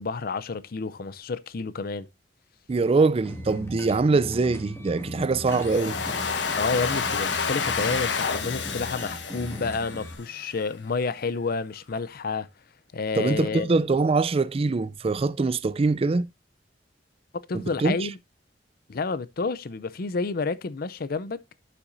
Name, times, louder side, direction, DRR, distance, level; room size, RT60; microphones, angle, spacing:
voice 1, 0.0-2.1 6.6-12.5 12.9-13.7 17.5-18.2 18.9-21.4, left 4 dB, 55° left, 0.5 m, -30 dB
voice 2, 2.7-6.0 13.2-16.3 17.5-18.0, right 3 dB, 35° right, 0.4 m, -23 dB
sound 1, 3.2-10.1, equal, 15° left, 2.0 m, -39 dB
Domestic sounds home sounds, 5.5-10.4, left 5 dB, 90° left, 1.2 m, -29 dB
12.0 x 5.9 x 2.6 m
head